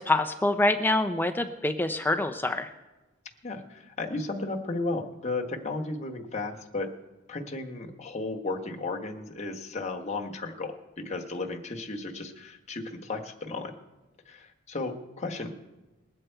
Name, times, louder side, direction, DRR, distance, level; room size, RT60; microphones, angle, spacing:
voice 1, 0.0-2.7, left 2 dB, 10° left, 7 dB, 0.5 m, -26 dB
voice 2, 3.4-6.9 7.3-13.7 14.3-15.5, left 3 dB, 35° left, 2 dB, 1.2 m, -34 dB
21.5 x 7.7 x 4.5 m, 1.1 s
head